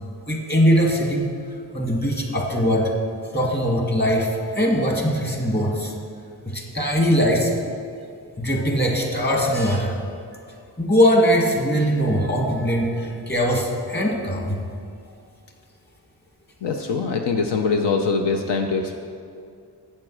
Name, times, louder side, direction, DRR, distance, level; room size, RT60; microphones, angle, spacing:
voice 1, 0.3-1.3 1.7-2.9 3.3-5.9 6.5-7.5 8.4-9.9 10.8-14.6, equal, 25° left, 0 dB, 2.0 m, -21 dB
voice 2, 16.6-19.0, left 4 dB, 80° left, 3 dB, 0.8 m, -23 dB
7.6 x 7.4 x 6.2 m, 2.3 s
cardioid pair, 65°, 41 cm